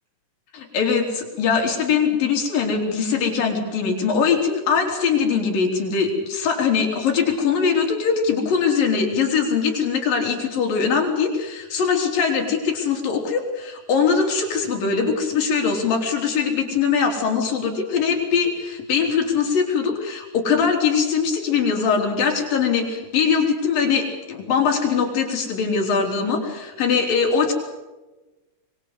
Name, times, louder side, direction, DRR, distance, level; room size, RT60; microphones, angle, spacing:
voice 1, 0.5-27.5, left 6 dB, 80° left, 2 dB, 5.4 m, -21 dB
25.0 x 22.5 x 8.2 m, 1.1 s
omnidirectional pair, 3.9 m